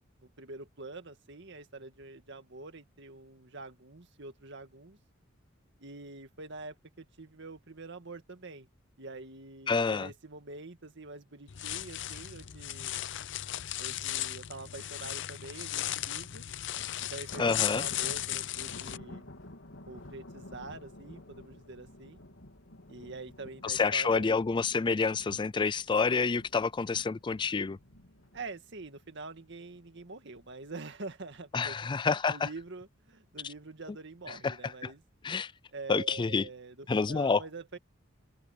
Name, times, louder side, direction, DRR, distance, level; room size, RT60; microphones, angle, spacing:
voice 1, 0.0-5.0 5.8-8.7 9.0-13.0 13.8-16.4 17.1-19.3 19.9-22.2 22.9-24.3 28.3-31.8 32.3-35.0 35.7-37.8, right 3 dB, 65° right, 2.0 m, -45 dB
voice 2, 9.7-10.1 17.4-17.8 23.6-27.8 31.5-32.5 34.3-34.7 35.2-35.5 35.9-36.5 36.9-37.4, left 4 dB, 25° left, 0.3 m, -28 dB
sound 1, 11.5-19.0, left 13 dB, 65° left, 0.6 m, -36 dB
Thunder, 16.7-30.0 30.4-30.7 31.1-31.2 32.1-32.6, left 1 dB, 90° left, 3.6 m, -51 dB
open air
head